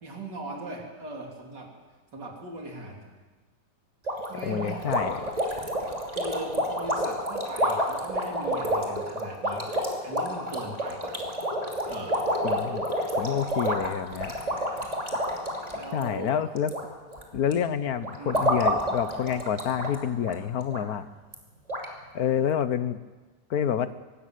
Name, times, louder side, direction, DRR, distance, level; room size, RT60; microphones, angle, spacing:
voice 1, 0.0-1.7 2.1-3.1 4.3-5.3 6.2-9.7 10.0-11.2 11.8-12.2 15.7-16.5 18.2-18.5, right 2 dB, 85° right, 1 dB, 4.0 m, -39 dB
sound 1, 4.1-16.8 17.1-17.5 18.0-19.9 20.2-20.3 20.7-20.8 21.3-21.4 21.7-21.9, equal, 20° right, 2.9 m, -29 dB
voice 2, 4.4-5.3 12.4-12.9 13.2-14.3 15.9-16.7 17.3-21.1 22.1-23.0 23.5-23.9, left 8 dB, 65° left, 13 dB, 1.3 m, -28 dB
24.5 x 13.0 x 9.2 m, 1.3 s
omnidirectional pair, 1.8 m